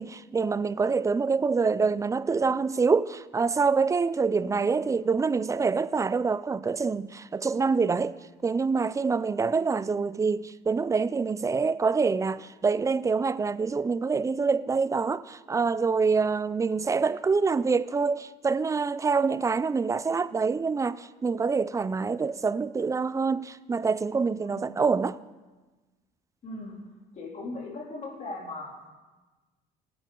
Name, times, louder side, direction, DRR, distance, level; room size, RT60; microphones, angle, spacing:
voice 1, 0.0-8.2 8.4-25.2, right 4 dB, 20° right, 0.4 m, -26 dB
voice 2, 4.4-4.8 24.4-24.8 26.4-26.8 27.1-28.9, left 2 dB, 45° left, 3.0 m, -39 dB
19.0 x 9.0 x 3.8 m
cardioid pair, 110°, 17 cm